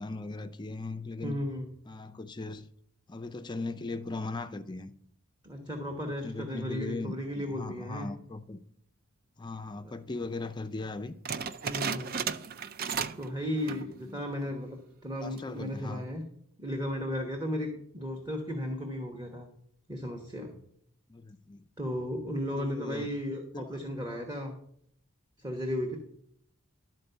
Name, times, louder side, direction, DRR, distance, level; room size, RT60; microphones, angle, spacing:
voice 1, 0.0-1.4 1.9-2.7 3.1-4.9 6.1-8.6 9.4-11.1 14.1-14.2 15.2-16.0 21.1-21.6 22.6-23.1 23.5-23.6, left 3 dB, 20° left, 0.4 m, -38 dB
voice 2, 1.2-1.7 5.4-8.1 9.8-9.9 11.6-12.2 13.2-16.2 16.6-19.5 19.9-20.5 21.8-24.5 25.4-26.0, left 1 dB, 20° right, 1.1 m, -35 dB
sound 1, 11.2-13.3 13.6-13.9 14.4-14.5 15.2-15.6, right 6 dB, 45° right, 0.5 m, -34 dB
12.0 x 4.5 x 6.8 m
head